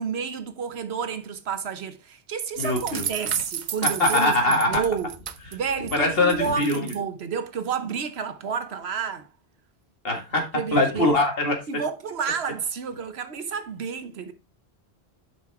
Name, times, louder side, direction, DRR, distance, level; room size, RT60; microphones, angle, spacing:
voice 1, 0.0-5.2 5.5-9.3 10.5-11.2 11.7-14.3, right 6 dB, 75° right, 1.2 m, -30 dB
voice 2, 2.6-3.1 4.0-4.8 6.0-6.8 10.0-10.4 10.7-11.6, left 2 dB, 65° left, 2.2 m, -22 dB
sound 1, 2.6-6.0 6.3-7.0, right 8 dB, 50° right, 0.7 m, -32 dB
7.8 x 5.6 x 3.5 m
omnidirectional pair, 1.1 m